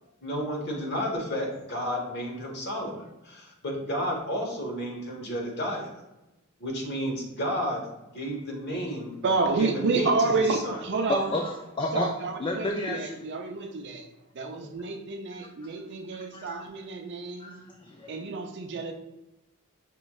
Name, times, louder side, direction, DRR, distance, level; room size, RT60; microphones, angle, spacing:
voice 1, 0.2-5.9 6.6-7.8 8.1-9.2 9.6-10.8, equal, 55° left, -1 dB, 1.2 m, -32 dB
voice 2, 9.2-11.3 11.9-14.1 14.3-17.6 18.1-18.9, right 3 dB, 55° right, 5 dB, 0.5 m, -29 dB
voice 3, 11.1-12.1 12.4-13.2 16.3-16.6 17.4-18.2, left 1 dB, 25° left, 1 dB, 0.3 m, -31 dB
5.3 x 3.0 x 2.3 m, 0.97 s
head